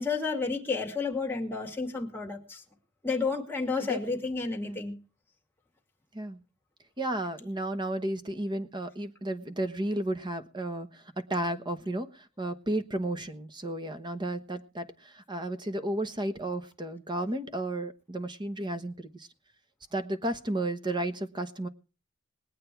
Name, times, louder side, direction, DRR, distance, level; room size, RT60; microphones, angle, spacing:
voice 1, 0.0-2.6 3.0-4.9, left 4 dB, 10° left, 2.3 m, -31 dB
voice 2, 7.0-19.3 19.9-21.7, right 1 dB, 20° right, 1.1 m, -33 dB
20.5 x 8.6 x 4.6 m
head